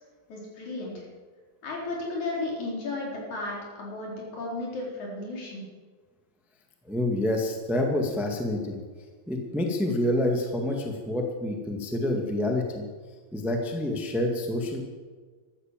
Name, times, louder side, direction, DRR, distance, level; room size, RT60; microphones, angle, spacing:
voice 1, 0.3-1.1 1.6-5.6, left 2 dB, 55° left, -3 dB, 5.3 m, -34 dB
voice 2, 6.9-8.8 9.3-12.9 13.3-14.8, left 1 dB, ahead, 1 dB, 0.7 m, -27 dB
14.0 x 12.5 x 7.5 m, 1.5 s
omnidirectional pair, 4.1 m